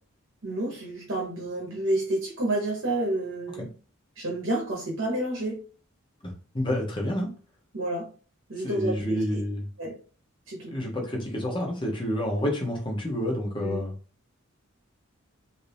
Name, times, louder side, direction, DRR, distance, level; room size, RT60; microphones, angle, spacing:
voice 1, 0.4-3.7 4.2-5.6 7.7-8.1 8.5-9.4 9.8-10.0 10.5-10.7 13.6-13.8, right 1 dB, 60° right, -2 dB, 0.9 m, -29 dB
voice 2, 6.2-7.3 8.6-9.7 10.7-13.9, equal, 25° left, 0 dB, 0.9 m, -29 dB
3.3 x 2.7 x 3.3 m, 0.38 s
head